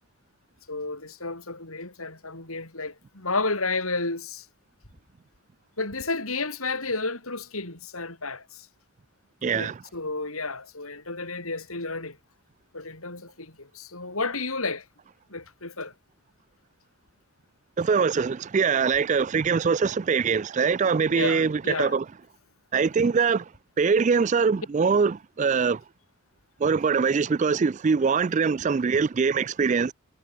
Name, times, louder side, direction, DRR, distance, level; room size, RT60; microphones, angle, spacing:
voice 1, 0.7-4.5 5.8-8.7 9.5-12.2 12.7-14.9 15.3-15.9 21.1-22.0, left 3 dB, 75° left, 7.2 m, -32 dB
voice 2, 9.4-9.7 17.8-22.0 22.7-23.4 23.8-25.8 26.6-29.9, right 5 dB, 35° right, 0.3 m, -23 dB
head